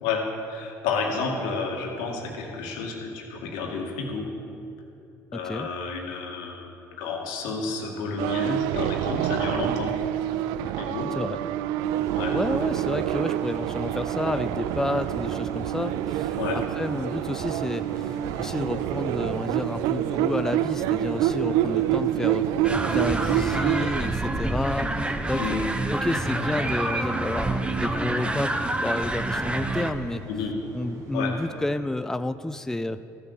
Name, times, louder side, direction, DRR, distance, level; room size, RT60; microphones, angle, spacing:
voice 1, 0.0-4.3 5.3-9.9 10.7-11.1 12.1-12.4 16.4-16.6 25.3-25.7 30.3-30.5 31.1-31.3, left 4 dB, 85° left, 1 dB, 1.9 m, -30 dB
voice 2, 5.3-5.7 11.2-11.4 12.3-22.5 22.9-25.6 25.9-30.3 30.7-33.0, left 1 dB, 5° left, 11 dB, 0.4 m, -30 dB
sound 1, 8.2-24.1, right 12 dB, 80° right, 0.3 m, -27 dB
sound 2, 11.8-31.7, right 2 dB, 50° right, 2.2 m, -43 dB
sound 3, 22.6-29.9, right 2 dB, 15° right, 1.0 m, -28 dB
13.5 x 6.6 x 7.1 m, 2.7 s
supercardioid pair, 70°, 7 cm